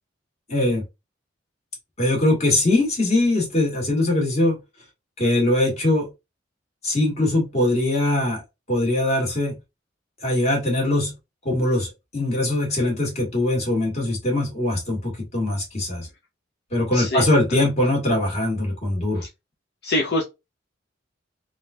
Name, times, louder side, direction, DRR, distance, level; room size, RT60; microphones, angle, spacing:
voice 1, 0.5-0.8 2.0-4.6 5.2-6.1 6.8-8.4 8.7-9.6 10.2-11.1 11.4-16.1 16.7-19.2, left 1 dB, 35° left, 1.7 m, -22 dB
voice 2, 16.9-17.3 19.2-19.3 19.8-20.2, left 2 dB, 60° left, 0.6 m, -24 dB
3.6 x 2.4 x 2.6 m
head